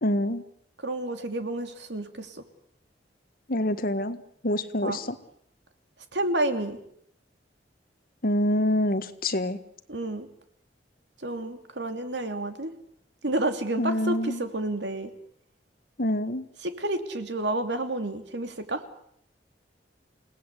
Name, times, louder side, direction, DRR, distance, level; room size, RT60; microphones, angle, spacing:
voice 1, 0.0-0.4 3.5-4.2 4.4-5.1 8.2-9.6 13.8-14.4 16.0-16.5, left 1 dB, 55° left, 10 dB, 1.7 m, -26 dB
voice 2, 0.8-2.4 4.8-5.0 6.1-6.8 9.9-10.3 11.2-12.7 13.2-15.1 16.6-18.8, right 1 dB, 75° right, 7 dB, 2.9 m, -30 dB
29.0 x 18.5 x 8.3 m, 0.70 s
head